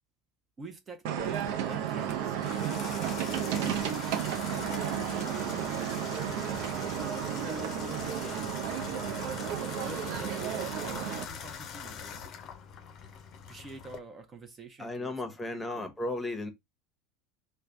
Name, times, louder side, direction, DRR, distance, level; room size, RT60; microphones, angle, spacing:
voice 1, 0.6-3.0 3.6-4.7 5.1-6.5 7.3-8.6 8.9-9.2 9.8-12.2 13.5-15.1 15.5-15.9, right 4 dB, 30° right, 0.7 m, -46 dB
sound 1, 1.0-11.2, right 9 dB, 65° right, 0.5 m, -33 dB
Water tap faucet / Bathtub (filling or washing), 1.2-14.0, left 7 dB, 45° left, 0.6 m, -42 dB
voice 2, 14.8-16.5, left 2 dB, 15° left, 0.9 m, -35 dB
3.2 x 2.2 x 3.7 m
hypercardioid pair, 80°, 0 cm